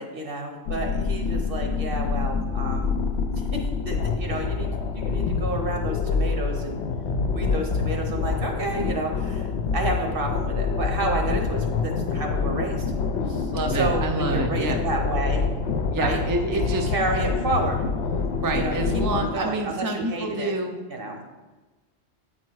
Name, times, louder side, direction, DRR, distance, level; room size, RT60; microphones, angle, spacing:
voice 1, 0.0-2.9 3.3-4.7 4.9-6.8 7.3-12.9 13.3-15.5 16.0-16.2 16.5-17.8 18.5-18.8 19.1-20.5 20.9-21.2, right 2 dB, 60° right, 2 dB, 1.3 m, -30 dB
sound 1, 0.7-19.3, left 5 dB, 75° left, 0.8 m, -26 dB
voice 2, 13.5-14.8 15.9-16.9 17.1-17.2 18.4-20.8, right 2 dB, 25° right, 3 dB, 0.4 m, -28 dB
8.3 x 4.4 x 4.6 m, 1.2 s
omnidirectional pair, 1.1 m